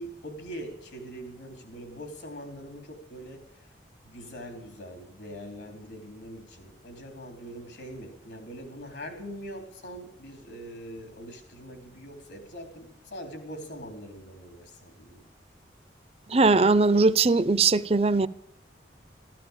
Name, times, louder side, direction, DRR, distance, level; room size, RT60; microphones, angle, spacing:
voice 1, 0.0-3.7 4.0-15.3, equal, 70° left, 3.8 m, -42 dB
voice 2, 16.3-18.3, right 3 dB, 35° right, 0.6 m, -20 dB
14.0 x 13.5 x 7.3 m
head